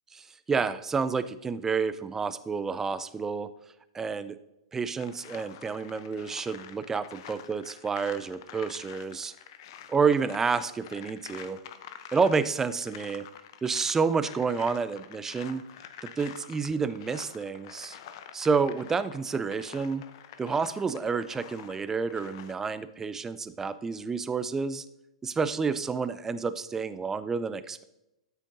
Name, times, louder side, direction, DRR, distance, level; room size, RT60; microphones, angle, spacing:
voice 1, 0.5-3.5 3.9-4.4 4.7-9.3 9.9-11.6 12.1-13.2 13.6-15.6 16.2-18.0 18.3-20.0 20.4-24.8 25.2-27.8, right 5 dB, 15° right, 13 dB, 0.5 m, -29 dB
sound 1, 5.0-22.5, left 9 dB, 50° left, 0.7 m, -48 dB
13.0 x 8.2 x 2.7 m, 0.90 s
figure-of-eight pair, 105°, 3 cm